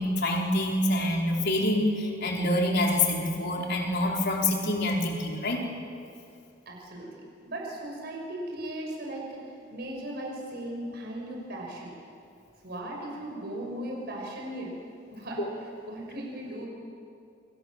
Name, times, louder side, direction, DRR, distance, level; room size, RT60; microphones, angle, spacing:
voice 1, 0.0-5.6 15.4-15.5, left 1 dB, 55° left, 0 dB, 4.4 m, -26 dB
voice 2, 6.7-7.1 7.5-11.9 12.6-14.8 15.1-15.4 15.9-16.7, right 1 dB, 55° right, -1 dB, 5.9 m, -37 dB
28.0 x 26.0 x 7.6 m, 2.5 s
head